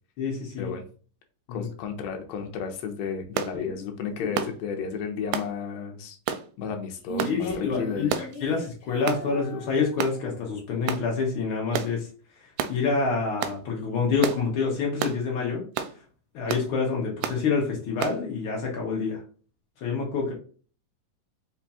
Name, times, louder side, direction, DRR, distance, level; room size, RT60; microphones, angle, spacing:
voice 1, 0.2-0.7 1.5-1.7 3.5-3.7 4.2-4.4 7.2-12.1 12.7-15.6 16.3-19.2 19.8-20.3, left 5 dB, 90° left, -1 dB, 1.1 m, -27 dB
voice 2, 1.5-6.2 6.6-8.1, left 6 dB, 70° left, 4 dB, 1.6 m, -33 dB
sound 1, 3.4-3.5 4.4-4.6 5.3-5.5 6.3-6.5 7.2-7.4 8.1-8.4 9.1-9.2 10.0-10.2 10.9-11.1 11.7-11.9 12.6-12.8 13.4-13.6 14.2-14.4 15.0-15.2 15.8-15.9 16.5-16.7 17.2-17.4 18.0-18.2, right 8 dB, 80° right, 1.8 m, -29 dB
Female singing, 7.0-10.6, right 2 dB, 55° left, 1.4 m, -40 dB
5.2 x 2.4 x 4.1 m, 0.40 s
omnidirectional pair, 3.9 m